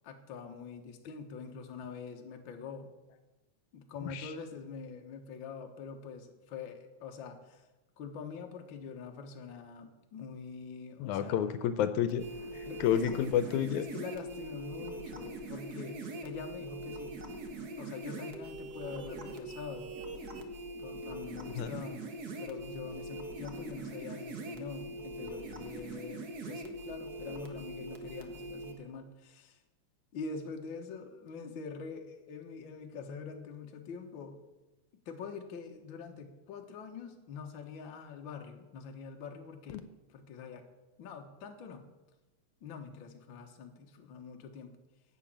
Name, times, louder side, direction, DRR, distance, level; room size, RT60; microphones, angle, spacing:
voice 1, 0.0-2.9 3.7-7.7 8.0-11.4 12.3-13.2 13.8-17.2 17.8-19.9 20.8-22.1 22.4-29.6 30.1-34.4 35.1-39.8 40.1-40.6 41.0-41.9 42.6-44.8, left 5 dB, 50° left, 4 dB, 1.7 m, -44 dB
voice 2, 11.0-12.2 12.5-13.8 21.6-21.7 39.7-39.8, left 9 dB, 85° left, 11 dB, 2.1 m, -30 dB
sound 1, 12.1-28.7, right 2 dB, 50° right, 1.2 m, -42 dB
11.5 x 7.4 x 8.8 m, 1.1 s
omnidirectional pair, 3.4 m